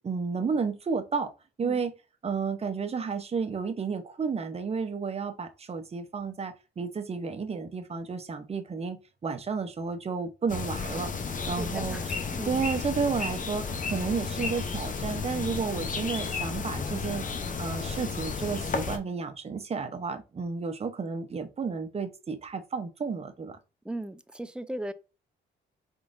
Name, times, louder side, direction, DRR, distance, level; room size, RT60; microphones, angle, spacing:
voice 1, 0.0-1.3 1.6-1.9 2.2-11.1 11.5-12.0 12.5-17.2 17.6-23.6, right 5 dB, 30° right, 0.8 m, -32 dB
sound 1, 10.5-19.0, left 4 dB, 40° left, 0.8 m, -33 dB
voice 2, 11.4-12.6 23.8-24.9, right 1 dB, 5° right, 0.4 m, -37 dB
4.8 x 3.8 x 2.5 m
cardioid pair, 90°, 20 cm